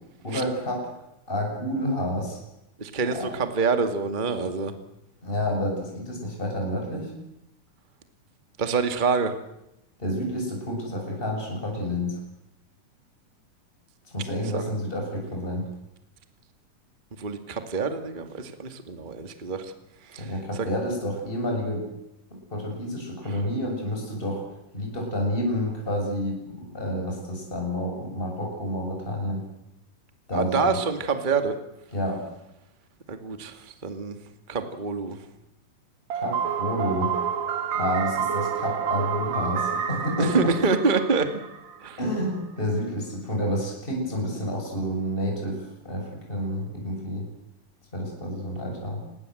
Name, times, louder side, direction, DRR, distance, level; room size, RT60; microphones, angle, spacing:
voice 1, 0.2-0.9 1.3-2.4 3.1-3.3 5.2-7.1 10.0-12.2 14.1-15.7 20.2-21.8 22.5-24.4 24.7-29.4 30.3-30.8 31.9-32.2 36.2-37.1 37.7-40.5 42.0-47.3 47.9-49.0, equal, 15° left, 0 dB, 7.4 m, -29 dB
voice 2, 2.8-4.7 8.6-9.3 14.5-14.6 17.2-19.7 20.1-20.7 30.3-31.5 33.1-34.2 34.5-35.2 40.2-41.3 41.8-42.0, right 4 dB, 20° right, 8 dB, 1.6 m, -26 dB
sound 1, 36.1-41.9, right 7 dB, 60° right, 2.8 m, -29 dB
27.0 x 21.5 x 7.9 m, 0.88 s
omnidirectional pair, 3.7 m